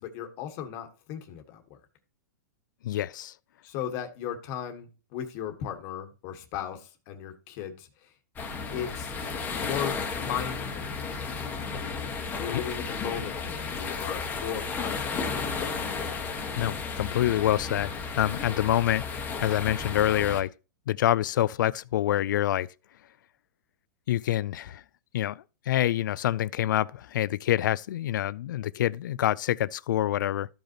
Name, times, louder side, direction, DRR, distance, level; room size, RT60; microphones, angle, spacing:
voice 1, 0.0-1.8 3.6-8.1 8.7-9.1 9.6-10.9 12.3-15.3, left 9 dB, 40° left, 1.5 m, -36 dB
voice 2, 2.8-3.3 12.5-12.6 16.6-19.1 19.4-20.5 20.9-22.7 24.1-24.8 25.1-30.5, left 12 dB, 75° left, 0.4 m, -26 dB
sound 1, 8.4-20.4, left 5 dB, 15° left, 1.2 m, -33 dB
13.5 x 5.3 x 2.9 m
hypercardioid pair, 150°, 10 cm